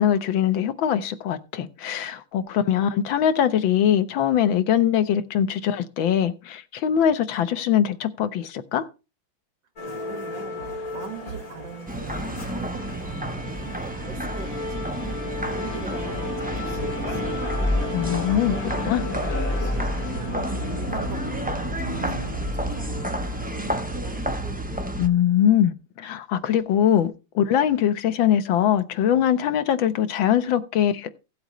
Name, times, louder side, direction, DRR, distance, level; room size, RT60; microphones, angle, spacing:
voice 1, 0.0-8.9 17.9-18.6 18.9-19.0 25.0-31.1, left 9 dB, 90° left, 1.8 m, -22 dB
Musical instrument, 9.8-24.4, left 2 dB, 45° left, 3.7 m, -35 dB
voice 2, 9.8-15.2 15.5-23.2 23.5-24.6, right 5 dB, 70° right, 2.5 m, -42 dB
sound 1, 11.9-25.1, equal, 10° right, 0.5 m, -29 dB
16.5 x 8.0 x 3.1 m
omnidirectional pair, 2.1 m